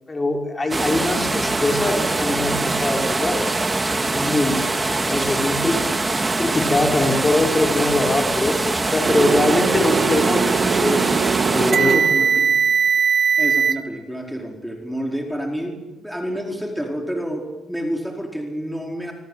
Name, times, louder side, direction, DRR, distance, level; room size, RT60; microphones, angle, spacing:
voice 1, 0.1-4.6 5.0-6.1 6.4-11.1 11.5-12.1 12.4-12.6, left 2 dB, 25° left, 2 dB, 5.6 m, -23 dB
sound 1, 0.7-11.7, right 2 dB, 20° right, 2.4 m, -23 dB
sound 2, 9.0-13.7, right 6 dB, 50° right, 2.4 m, -20 dB
voice 2, 11.8-12.5 13.4-19.1, equal, ahead, 1 dB, 4.6 m, -29 dB
26.0 x 23.0 x 9.2 m, 1.1 s
cardioid pair, 90°, 0 cm